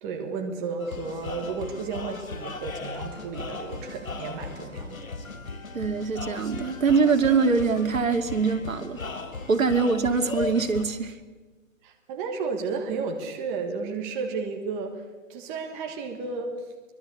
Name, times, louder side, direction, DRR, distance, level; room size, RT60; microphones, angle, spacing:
voice 1, 0.0-5.0 11.8-15.0 15.3-16.7, right 4 dB, 10° right, 4 dB, 1.4 m, -33 dB
sound 1, 0.8-10.8, left 4 dB, 85° left, 4.3 m, -37 dB
voice 2, 5.7-9.0 9.5-11.2, right 5 dB, 75° right, 6 dB, 2.8 m, -23 dB
24.0 x 21.5 x 8.3 m, 1.3 s
hypercardioid pair, 165°, 40 cm